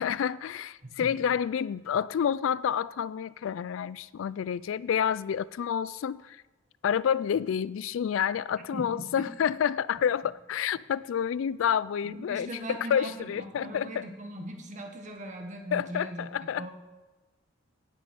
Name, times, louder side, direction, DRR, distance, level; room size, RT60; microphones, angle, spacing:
voice 1, 0.0-6.4 6.8-14.0 15.7-16.7, left 8 dB, 75° left, 0.3 m, -29 dB
voice 2, 0.8-1.2 8.6-9.3 12.0-16.7, right 1 dB, 40° right, 1.6 m, -40 dB
9.4 x 8.0 x 9.0 m
head